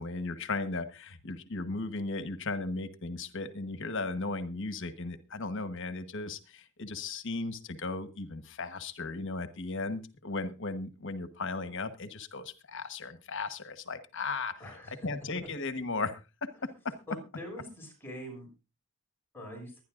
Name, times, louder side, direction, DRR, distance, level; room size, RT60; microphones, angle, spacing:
voice 1, 0.0-14.6 15.0-16.2 16.6-17.0, left 3 dB, 65° left, 11 dB, 1.3 m, -36 dB
voice 2, 14.6-15.1 17.1-18.5 19.3-19.7, equal, 10° left, 1 dB, 6.4 m, -43 dB
23.0 x 10.5 x 2.5 m, 0.30 s
head